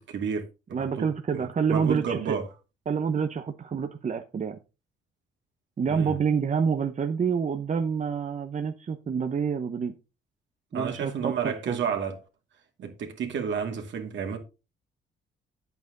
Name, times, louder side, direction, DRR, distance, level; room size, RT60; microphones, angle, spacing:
voice 1, 0.0-1.1 1.3-2.5 5.9-6.2 10.7-12.2 12.8-14.4, right 7 dB, 70° right, 2.5 m, -31 dB
voice 2, 0.7-2.4 2.9-4.6 5.8-9.9 10.7-11.8, right 6 dB, 40° right, 0.9 m, -28 dB
9.3 x 8.3 x 3.9 m
cardioid pair, 90°, 20 cm